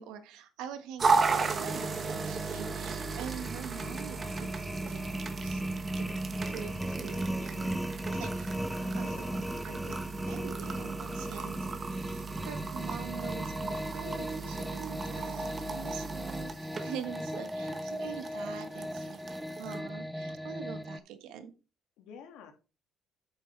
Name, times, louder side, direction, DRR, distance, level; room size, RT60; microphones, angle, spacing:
voice 1, 0.0-5.0 5.4-6.1 6.5-7.7 8.0-8.5 8.9-9.2 9.6-10.0 10.3-19.2 19.6-21.5, right 8 dB, 85° right, 8 dB, 1.3 m, -44 dB
sound 1, 1.0-19.8, right 4 dB, 40° right, 1.3 m, -36 dB
sound 2, 1.5-21.0, equal, ahead, 0.6 m, -37 dB
voice 2, 8.8-9.5 17.6-18.2 22.0-22.5, left 7 dB, 85° left, 5 dB, 1.8 m, -51 dB
8.7 x 6.7 x 3.3 m, 0.32 s
cardioid pair, 90°, 0 cm